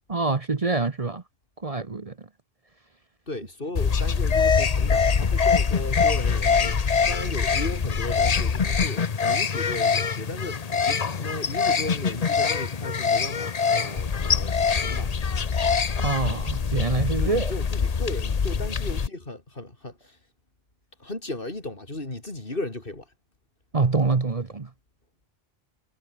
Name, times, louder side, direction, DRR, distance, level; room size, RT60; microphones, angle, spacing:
voice 1, 0.1-1.2 1.6-2.1 16.0-17.5 23.7-24.7, right 4 dB, 35° right, 1.1 m, -25 dB
voice 2, 3.3-15.3 17.2-20.2 21.0-23.1, left 2 dB, 60° left, 4.3 m, -36 dB
sound 1, 3.8-19.1, left 5 dB, 40° left, 0.9 m, -24 dB
omnidirectional pair, 1.0 m